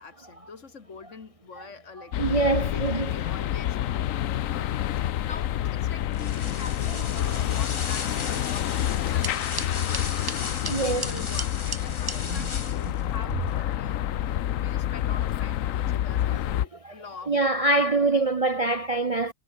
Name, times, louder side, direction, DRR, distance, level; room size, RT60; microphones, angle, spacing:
voice 1, 0.0-2.1 2.4-10.1 10.5-17.7, left 5 dB, 45° left, 1.9 m, -45 dB
sound 1, 2.1-16.6, left 12 dB, 60° left, 0.9 m, -28 dB
voice 2, 2.2-3.1 10.7-11.1 12.3-12.5 12.8-12.9 16.1-16.4 16.8-16.9 17.3-19.3, right 2 dB, 60° right, 0.3 m, -25 dB
sound 2, 6.1-13.0, left 4 dB, 25° left, 0.7 m, -37 dB
sound 3, 8.9-12.2, right 2 dB, 10° right, 1.8 m, -37 dB
omnidirectional pair, 1.9 m